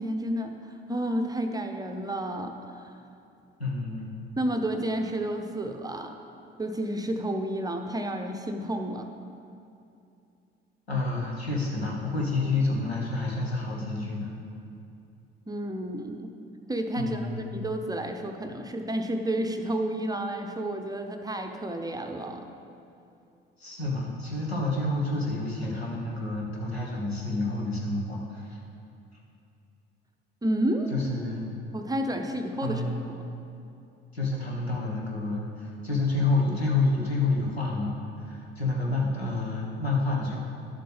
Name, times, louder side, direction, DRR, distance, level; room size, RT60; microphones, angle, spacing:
voice 1, 0.0-3.0 4.4-6.2 6.6-9.1 15.5-16.3 16.7-22.4 30.4-30.9 31.7-32.8, right 1 dB, 10° right, 4 dB, 0.7 m, -31 dB
voice 2, 3.6-4.1 10.9-14.3 17.0-17.5 23.6-28.6 30.9-31.4 32.6-33.0 34.1-40.4, left 2 dB, 85° left, -3 dB, 1.3 m, -29 dB
12.0 x 7.6 x 3.4 m, 2.6 s
figure-of-eight pair, 60°, 30 cm